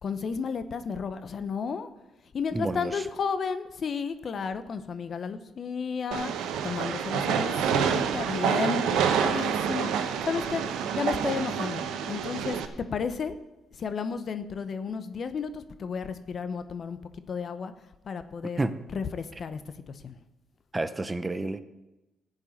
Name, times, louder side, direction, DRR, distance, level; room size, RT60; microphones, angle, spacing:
voice 1, 0.0-1.9 2.3-13.4 13.7-17.0 17.3-17.7 18.0-18.6 18.9-19.6 19.9-20.2, left 5 dB, 50° left, 11 dB, 0.9 m, -33 dB
voice 2, 2.5-2.9 18.6-18.7 20.7-21.6, right 2 dB, 20° right, 12 dB, 0.7 m, -29 dB
Train, 6.1-12.6, right 7 dB, 90° right, 1.0 m, -28 dB
14.5 x 5.5 x 8.5 m, 1.0 s
cardioid pair, 90°, 0 cm